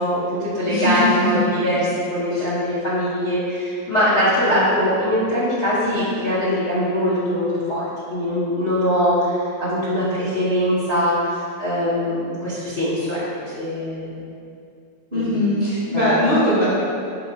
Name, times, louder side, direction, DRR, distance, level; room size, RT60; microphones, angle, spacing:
voice 1, 0.0-7.8 8.1-11.3 11.6-14.2 15.1-15.4 15.9-16.1, equal, 90° left, -11 dB, 0.5 m, -22 dB
voice 2, 0.7-1.1 2.3-2.4 15.1-16.6, left 1 dB, 50° right, -12 dB, 0.6 m, -20 dB
4.2 x 2.1 x 4.1 m, 2.4 s
omnidirectional pair, 2.2 m